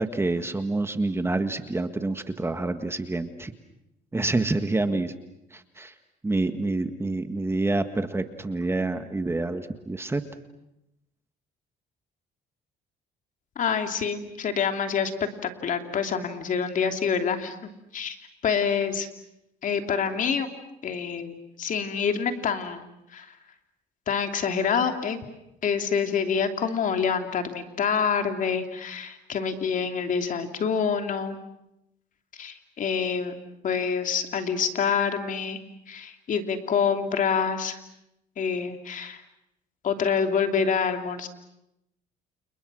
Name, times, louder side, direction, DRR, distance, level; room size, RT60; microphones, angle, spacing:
voice 1, 0.0-3.5 4.1-5.1 5.5-5.9 6.2-10.2, right 2 dB, 15° right, 8 dB, 1.6 m, -27 dB
voice 2, 13.6-17.6 17.9-18.2 18.4-19.1 19.6-20.5 20.8-23.4 24.1-25.2 25.6-31.4 32.4-33.4 33.6-35.6 35.9-37.8 38.4-39.2 39.8-41.3, left 6 dB, 50° left, 6 dB, 2.9 m, -27 dB
29.5 x 29.5 x 6.3 m, 0.87 s
cardioid pair, 110°, 17 cm